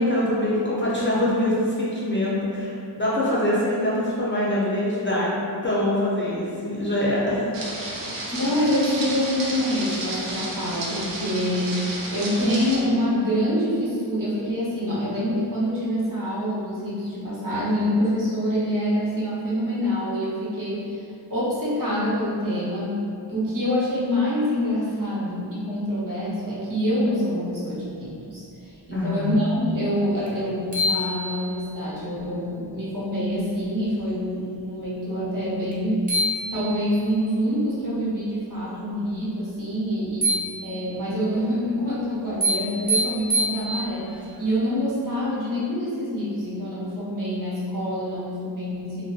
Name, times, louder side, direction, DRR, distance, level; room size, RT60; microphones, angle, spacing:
voice 1, 0.0-5.4 5.6-7.4 28.9-29.4, left 1 dB, 25° left, -8 dB, 0.4 m, -24 dB
sound 1, 7.5-12.8, right 2 dB, 70° right, 0.6 m, -32 dB
voice 2, 8.1-23.0 23.3-36.1 36.5-40.3 40.6-49.1, equal, 45° right, -9 dB, 0.9 m, -26 dB
sound 2, 30.3-30.4 30.7-31.8 35.7-35.8 36.1-37.1 40.2-41.1 42.4-44.1, equal, 20° right, 0.6 m, -26 dB
2.5 x 2.2 x 2.3 m, 2.5 s
wide cardioid pair, 55°, 45 cm